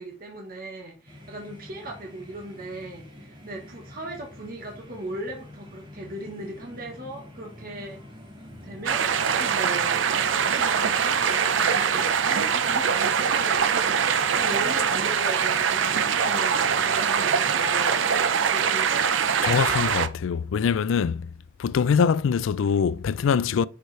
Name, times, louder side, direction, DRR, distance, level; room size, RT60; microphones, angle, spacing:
voice 1, 0.0-8.0 8.6-10.1 10.3-13.7 14.3-18.1 18.5-19.4, right 1 dB, 45° right, 1.2 m, -38 dB
sound 1, 1.1-17.8, left 1 dB, 25° right, 1.9 m, -47 dB
sound 2, 8.9-20.1, right 7 dB, 65° right, 0.5 m, -23 dB
voice 2, 19.4-21.3 21.6-23.7, left 6 dB, 75° left, 0.3 m, -23 dB
6.6 x 4.7 x 3.3 m
head